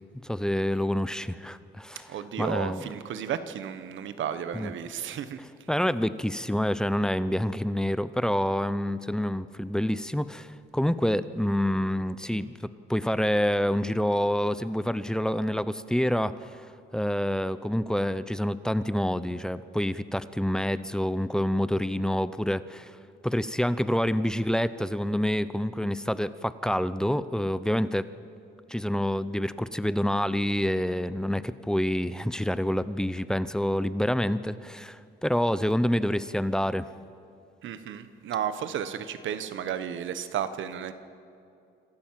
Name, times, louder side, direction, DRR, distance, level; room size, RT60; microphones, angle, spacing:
voice 1, 0.2-2.9 4.5-4.7 5.4-16.6 16.9-23.0 23.2-28.1 28.7-36.9, equal, 5° left, 15 dB, 0.6 m, -27 dB
voice 2, 2.1-5.4 37.6-40.9, right 9 dB, 75° right, 12 dB, 1.2 m, -33 dB
26.5 x 13.5 x 7.6 m, 2.5 s
cardioid pair, 90°, 20 cm